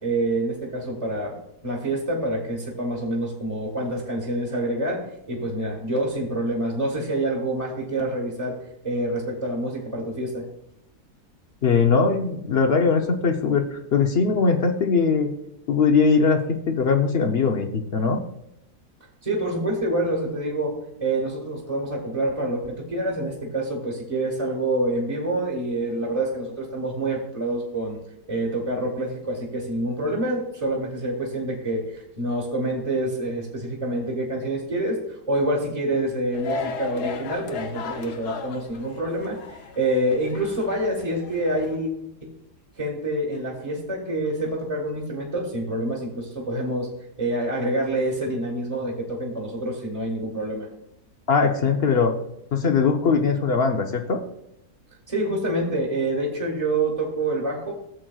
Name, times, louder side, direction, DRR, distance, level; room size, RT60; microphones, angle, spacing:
voice 1, 0.0-1.4 1.6-5.0 5.3-8.6 8.8-10.4 19.2-28.0 28.3-41.9 42.2-42.3 42.8-46.9 47.2-50.7 55.1-57.7, right 1 dB, 25° right, -5 dB, 1.5 m, -27 dB
voice 2, 11.6-15.3 15.7-18.2 51.3-52.1 52.5-54.2, left 5 dB, 55° left, 5 dB, 0.7 m, -21 dB
sound 1, 36.3-41.8, left 5 dB, 85° left, 1.4 m, -36 dB
14.5 x 7.6 x 2.3 m, 0.81 s
omnidirectional pair, 1.7 m